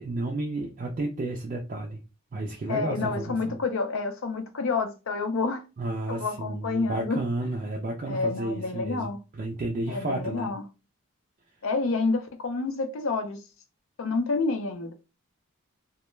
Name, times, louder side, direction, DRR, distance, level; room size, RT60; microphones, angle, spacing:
voice 1, 0.0-2.0 2.3-3.6 5.8-10.5, right 2 dB, 35° right, 0.3 m, -32 dB
voice 2, 2.7-5.6 6.1-7.2 8.1-9.2 9.9-10.6 11.6-13.4 14.0-14.9, left 3 dB, 65° left, 0.5 m, -28 dB
2.2 x 2.1 x 3.0 m
head